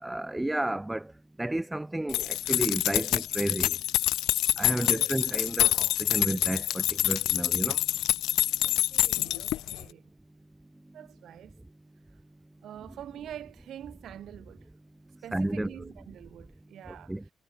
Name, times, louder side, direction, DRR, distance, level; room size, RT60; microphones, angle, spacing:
voice 1, 0.0-1.1 1.4-3.8 4.6-7.8 15.3-15.9 16.9-17.2, right 1 dB, 10° right, 0.5 m, -32 dB
sound 1, 2.1-9.8, left 15 dB, 85° left, 0.6 m, -27 dB
voice 2, 4.8-5.2 8.6-10.1 10.9-11.6 12.6-14.7 15.2-17.1, right 11 dB, 70° right, 4.4 m, -46 dB
cardioid pair, 90°, 0 cm